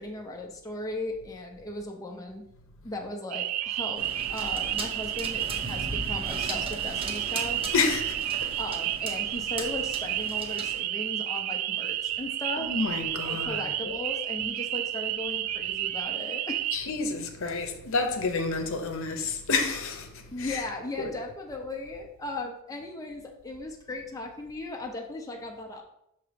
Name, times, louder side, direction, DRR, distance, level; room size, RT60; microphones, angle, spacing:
voice 1, 0.0-2.4 2.8-4.0 4.3-7.6 8.6-12.7 13.2-16.6 20.3-25.8, left 2 dB, 15° left, 0.5 m, -37 dB
sound 1, 3.3-16.8, right 13 dB, 85° right, 0.3 m, -31 dB
sound 2, 3.9-10.8, right 2 dB, 25° right, 0.8 m, -38 dB
voice 2, 7.7-8.6 12.6-13.9 16.7-20.7 21.0-21.1, left 4 dB, 65° left, 0.8 m, -30 dB
6.5 x 2.8 x 5.0 m
head